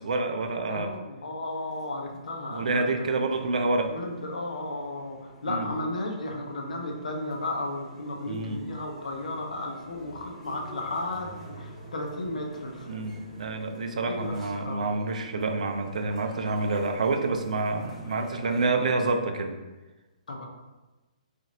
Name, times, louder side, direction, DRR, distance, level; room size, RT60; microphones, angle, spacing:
voice 1, 0.0-0.9 2.5-3.9 5.5-5.7 8.2-8.6 12.9-19.6, right 3 dB, 75° right, 6 dB, 0.3 m, -28 dB
voice 2, 0.7-3.1 3.9-13.0 14.0-14.9 20.3-20.5, left 2 dB, 85° left, 1 dB, 0.6 m, -34 dB
sound 1, 1.5-18.9, right 1 dB, 10° left, 1.0 m, -50 dB
2.5 x 2.4 x 2.9 m, 1.1 s
hypercardioid pair, 140°, 4 cm